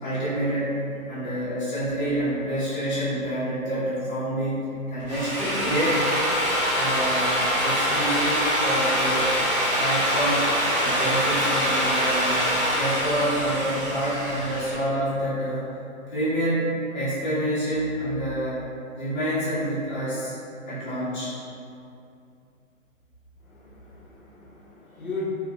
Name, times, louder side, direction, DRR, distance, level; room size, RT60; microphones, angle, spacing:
voice 1, 0.0-6.1 6.7-9.3 9.8-12.5 12.7-15.7 16.1-18.6 18.9-20.3 20.7-21.3, right 1 dB, 35° left, -14 dB, 1.0 m, -27 dB
Drill, 4.9-14.7, equal, 35° right, 0.6 m, -24 dB
voice 2, 23.5-25.3, left 2 dB, 85° left, -4 dB, 0.8 m, -37 dB
2.9 x 2.4 x 2.4 m, 2.5 s
figure-of-eight pair, 135°, 42 cm